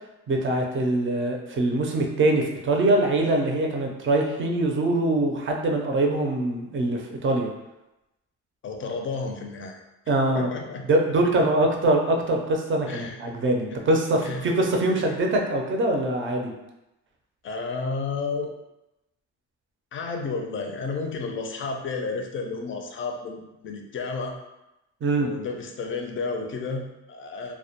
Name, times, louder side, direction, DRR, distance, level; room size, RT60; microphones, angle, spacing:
voice 1, 0.3-7.5 10.1-10.5 10.9-16.5 25.0-25.3, right 2 dB, 40° right, 2 dB, 0.5 m, -23 dB
voice 2, 8.6-9.8 10.3-10.9 12.9-13.2 13.7-13.8 14.2-14.5 14.9-15.0 17.4-18.5 19.9-24.4 25.2-27.5, left 4 dB, 40° left, 3 dB, 0.4 m, -32 dB
2.1 x 2.1 x 2.8 m, 0.94 s
cardioid pair, 90°, 30 cm